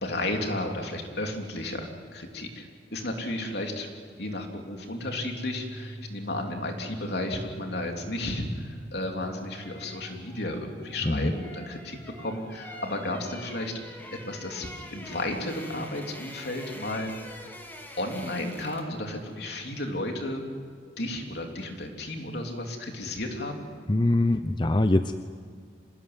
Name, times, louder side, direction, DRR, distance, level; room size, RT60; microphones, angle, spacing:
voice 1, 0.0-2.7 2.9-3.9 4.2-13.7 14.3-17.5 18.0-20.5 21.0-23.7, left 1 dB, 65° left, 2 dB, 3.4 m, -33 dB
sound 1, 5.1-11.3, right 1 dB, 15° right, 6.0 m, -45 dB
sound 2, 9.0-19.0 19.3-19.5, left 1 dB, 10° left, 2.6 m, -45 dB
voice 2, 23.9-25.1, left 1 dB, 25° left, 9 dB, 0.7 m, -23 dB
26.0 x 19.0 x 9.7 m, 2.1 s
head